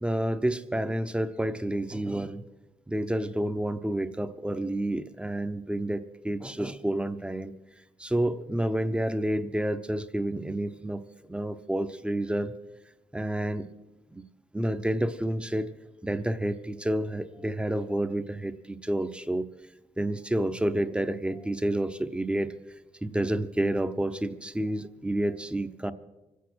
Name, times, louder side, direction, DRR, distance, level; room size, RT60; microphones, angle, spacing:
voice 1, 0.0-2.4 2.9-7.5 8.0-11.0 11.3-12.5 13.1-13.7 14.1-14.2 14.5-15.7 16.0-19.5 20.0-22.5 23.0-25.9, right 1 dB, 10° right, 10 dB, 0.7 m, -29 dB
25.0 x 8.4 x 6.2 m, 1.0 s
cardioid pair, 100°, 12 cm